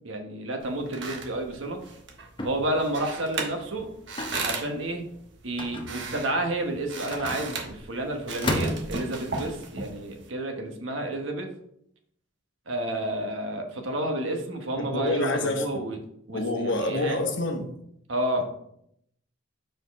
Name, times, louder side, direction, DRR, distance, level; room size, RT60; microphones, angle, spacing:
voice 1, 0.0-1.8 2.4-3.9 4.4-5.0 5.4-11.5 12.7-16.0 16.3-17.2 18.1-18.5, right 1 dB, 80° right, 4 dB, 1.1 m, -30 dB
sound 1, 0.6-10.3, right 4 dB, 65° right, 1.1 m, -37 dB
sound 2, 2.4-2.8 4.2-4.5 5.6-6.2 7.1-7.8 8.4-9.2, left 1 dB, 25° left, 0.8 m, -32 dB
voice 2, 14.8-15.9 16.3-17.7, left 2 dB, 65° left, 5 dB, 1.0 m, -28 dB
5.2 x 4.7 x 4.6 m, 0.72 s
head